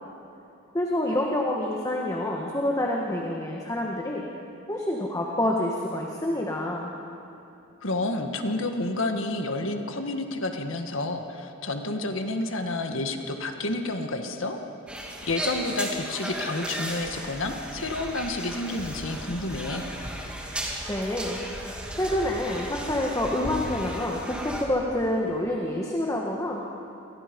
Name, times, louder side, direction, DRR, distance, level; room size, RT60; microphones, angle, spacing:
voice 1, 0.7-4.2 4.7-6.9 20.9-21.4 21.9-26.6, left 1 dB, 15° left, -1 dB, 1.6 m, -27 dB
voice 2, 7.8-14.6 15.3-19.9, left 2 dB, 65° left, 5 dB, 1.7 m, -30 dB
sound 1, 14.9-24.6, equal, 5° right, 2.5 m, -35 dB
29.5 x 23.5 x 5.4 m, 2.8 s
head